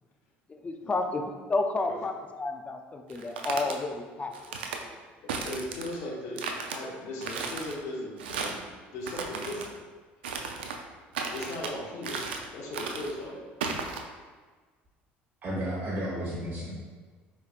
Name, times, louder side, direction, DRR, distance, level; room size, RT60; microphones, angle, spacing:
voice 1, 0.6-2.1 2.4-4.3, left 3 dB, 25° left, 5 dB, 0.4 m, -30 dB
sound 1, 3.1-3.8 4.3-4.8 5.3-6.0 6.4-6.8 7.2-7.7 8.2-8.6 9.0-9.7 10.2-10.8 11.1-11.7 12.0-12.5 12.7-13.1 13.6-14.0, right 5 dB, 90° right, 0.3 m, -35 dB
voice 2, 5.2-8.6 8.9-9.7 11.3-13.4 15.9-16.0, left 1 dB, 65° left, -2 dB, 0.8 m, -38 dB
voice 3, 15.4-16.7, equal, 35° right, -7 dB, 1.1 m, -32 dB
4.6 x 3.2 x 2.4 m, 1.4 s
hypercardioid pair, 70°, 6 cm